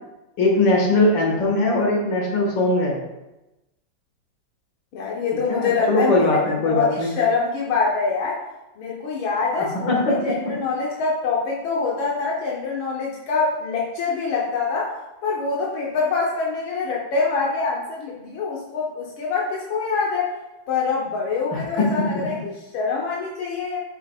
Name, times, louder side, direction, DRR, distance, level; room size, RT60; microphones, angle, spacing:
voice 1, 0.4-3.0 5.5-7.1 9.5-10.2 21.5-21.9, left 2 dB, 65° left, -2 dB, 2.5 m, -20 dB
voice 2, 4.9-6.2 6.6-8.4 8.8-14.9 15.2-20.3 20.7-23.8, left 4 dB, 90° left, -3 dB, 1.8 m, -25 dB
7.6 x 7.2 x 2.4 m, 0.99 s
omnidirectional pair, 2.2 m